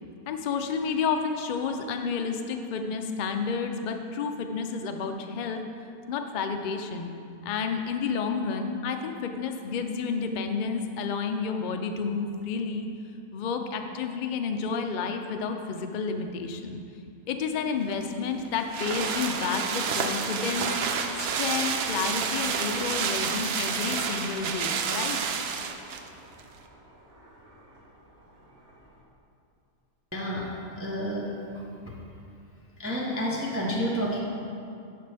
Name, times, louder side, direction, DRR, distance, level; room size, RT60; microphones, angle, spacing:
voice 1, 0.3-5.6 6.1-7.1 7.4-12.9 13.3-16.8 17.3-20.8 21.2-25.2, left 5 dB, 85° left, 5 dB, 0.4 m, -30 dB
sound 1, 17.9-26.1 26.4-26.5, right 6 dB, 65° right, 0.6 m, -29 dB
Skateboard, 18.9-29.0, right 1 dB, 80° right, 2.0 m, -45 dB
voice 2, 30.1-30.5 30.8-31.3 31.5-31.9 32.8-34.2, equal, 15° right, -4 dB, 0.6 m, -30 dB
11.0 x 6.0 x 3.3 m, 2.6 s
omnidirectional pair, 1.5 m